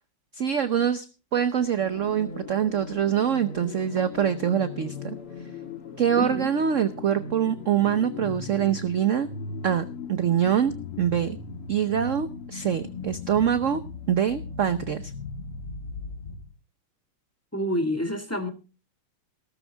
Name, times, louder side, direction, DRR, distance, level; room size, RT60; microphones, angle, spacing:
voice 1, 0.3-1.0 1.3-5.2 6.0-9.3 9.6-10.7 11.0-11.4 11.7-13.8 14.1-15.1, right 9 dB, 55° right, 11 dB, 0.8 m, -24 dB
sound 1, 1.5-16.5, left 4 dB, 80° left, 3.1 m, -38 dB
voice 2, 6.2-6.5 17.5-18.5, equal, 5° left, 6 dB, 2.0 m, -28 dB
17.0 x 13.5 x 3.4 m, 0.33 s
omnidirectional pair, 2.4 m